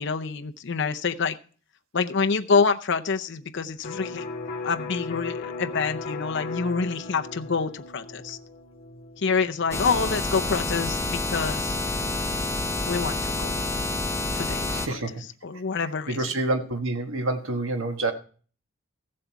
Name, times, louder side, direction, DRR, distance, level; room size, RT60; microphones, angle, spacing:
voice 1, 0.0-1.4 1.9-4.3 4.6-8.4 9.2-11.8 12.9-13.5 14.4-15.0 15.4-16.2, left 5 dB, 55° left, 6 dB, 0.6 m, -27 dB
Electric guitar, 3.8-11.5, left 3 dB, 40° left, 3.5 m, -37 dB
sound 1, 9.7-14.9, left 2 dB, 10° left, 0.8 m, -28 dB
voice 2, 14.7-15.1 16.1-18.1, right 2 dB, 65° right, 5 dB, 1.3 m, -27 dB
14.5 x 7.6 x 4.6 m, 0.41 s
head